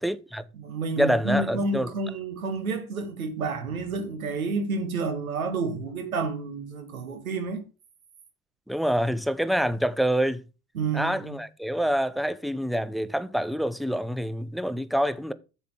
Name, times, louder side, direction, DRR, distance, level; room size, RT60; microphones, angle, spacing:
voice 1, 0.0-0.4 1.0-1.9 8.7-10.4 10.9-15.3, equal, ahead, 0.5 m, -26 dB
voice 2, 0.5-7.6 10.7-11.4, right 3 dB, 90° right, 1.4 m, -30 dB
7.6 x 7.0 x 3.7 m
hypercardioid pair, 65°, 41 cm